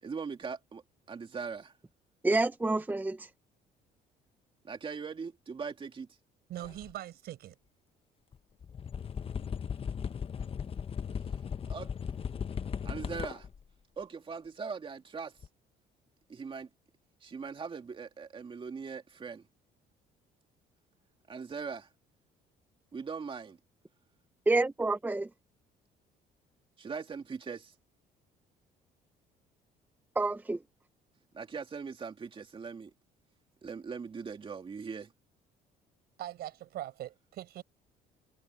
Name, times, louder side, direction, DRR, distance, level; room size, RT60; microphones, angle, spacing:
voice 1, 0.0-1.8 4.6-6.1 11.7-11.9 12.8-13.5 14.0-15.4 16.3-16.7 17.2-19.5 21.3-21.9 22.9-23.6 26.8-27.7 31.3-32.9 33.6-35.1, right 5 dB, 30° right, 2.5 m, -40 dB
voice 2, 2.2-3.3 24.5-25.3 30.2-30.6, right 2 dB, 10° right, 0.7 m, -28 dB
voice 3, 6.5-7.5 36.2-37.6, right 13 dB, 70° right, 5.7 m, -41 dB
sound 1, 6.6-6.9 8.3-8.4 8.6-13.6 15.4-15.5, left 7 dB, 35° left, 1.0 m, -37 dB
cardioid pair, 110°, 17 cm